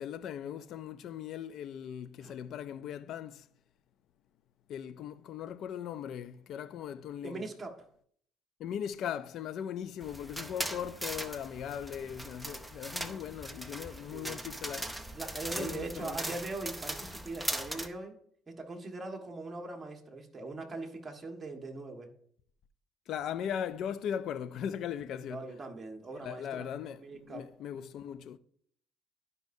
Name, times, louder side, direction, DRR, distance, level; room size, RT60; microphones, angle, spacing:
voice 1, 0.0-3.5 4.7-7.4 8.6-14.9 15.5-16.2 23.1-25.4 26.2-28.4, left 9 dB, 65° left, 0.5 m, -39 dB
voice 2, 7.2-7.9 14.1-14.4 15.1-18.2 18.5-22.1 25.3-26.7 27.0-27.5, right 2 dB, 25° right, 1.5 m, -41 dB
sound 1, 10.0-17.9, right 1 dB, ahead, 0.7 m, -39 dB
12.0 x 5.3 x 2.7 m
supercardioid pair, 85°, 0 cm